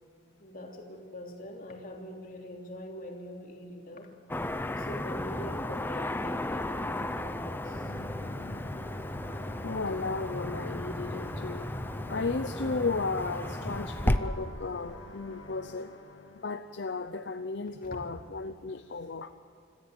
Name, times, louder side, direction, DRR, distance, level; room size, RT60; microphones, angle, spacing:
voice 1, 0.4-4.1 4.7-7.9 17.8-18.0, left 1 dB, 45° left, 1 dB, 3.1 m, -43 dB
Car passing by / Traffic noise roadway noise, 4.3-14.2, left 1 dB, 10° left, 0.6 m, -34 dB
sound 1, 7.6-16.6, left 1 dB, 90° left, 1.9 m, -46 dB
voice 2, 9.6-11.7 12.1-16.0 16.4-19.3, left 3 dB, 65° left, 9 dB, 0.7 m, -34 dB
25.5 x 14.5 x 8.1 m, 2.2 s
head